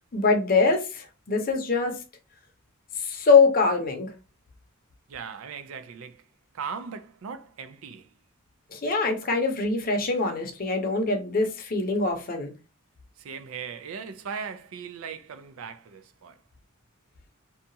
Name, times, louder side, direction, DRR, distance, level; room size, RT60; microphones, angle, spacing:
voice 1, 0.1-2.0 3.0-4.1 8.7-12.5, left 4 dB, 45° left, 0.7 m, -23 dB
voice 2, 5.1-6.2 6.5-8.1 13.2-16.4, right 6 dB, 80° right, 0.4 m, -38 dB
2.8 x 2.3 x 2.7 m
head